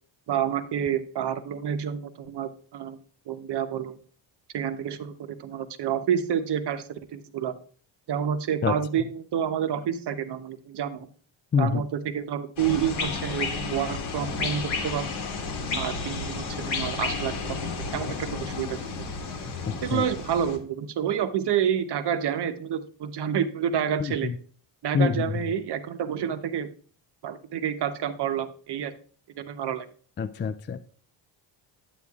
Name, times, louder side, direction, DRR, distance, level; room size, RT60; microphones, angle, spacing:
voice 1, 0.3-3.0 3.3-4.0 4.5-7.5 8.1-11.1 11.6-15.1 15.7-17.6 17.9-18.7 19.8-24.3 24.8-26.7 27.2-28.9 29.4-29.9, right 8 dB, 60° right, 10 dB, 0.9 m, -29 dB
sound 1, 12.6-20.6, left 4 dB, 75° left, 1.8 m, -32 dB
voice 2, 30.2-30.8, left 6 dB, 25° left, 10 dB, 0.3 m, -24 dB
9.3 x 8.6 x 2.4 m, 0.44 s
cardioid pair, 95°, 47 cm